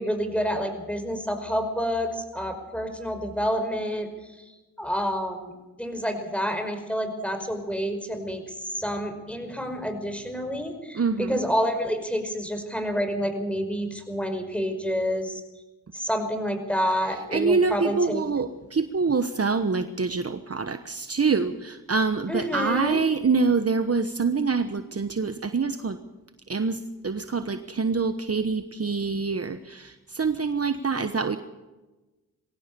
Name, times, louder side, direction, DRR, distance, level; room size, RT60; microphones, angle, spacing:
voice 1, 0.0-4.1 4.4-4.5 4.8-5.5 5.8-15.4 15.9-18.2 22.3-23.0, equal, 5° left, 7 dB, 5.4 m, -28 dB
voice 2, 10.9-11.4 17.1-26.0 26.5-31.4, right 4 dB, 40° right, 10 dB, 1.2 m, -25 dB
22.5 x 17.0 x 6.9 m, 1.1 s
cardioid pair, 45°, 35 cm